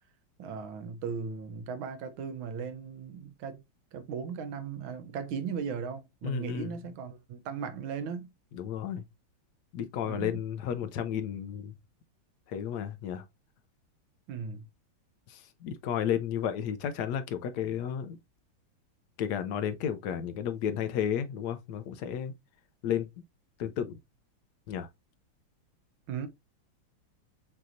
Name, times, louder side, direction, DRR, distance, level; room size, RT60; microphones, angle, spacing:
voice 1, 0.4-3.6 3.9-8.3 10.0-10.4 14.3-14.7 26.1-26.3, right 6 dB, 80° right, 1.5 m, -37 dB
voice 2, 6.2-6.8 8.5-9.0 9.7-11.7 12.5-13.2 15.3-18.2 19.2-22.3 22.8-23.1 23.6-24.0 24.7-24.9, left 9 dB, 70° left, 1.0 m, -32 dB
6.2 x 2.8 x 2.5 m
omnidirectional pair, 2.2 m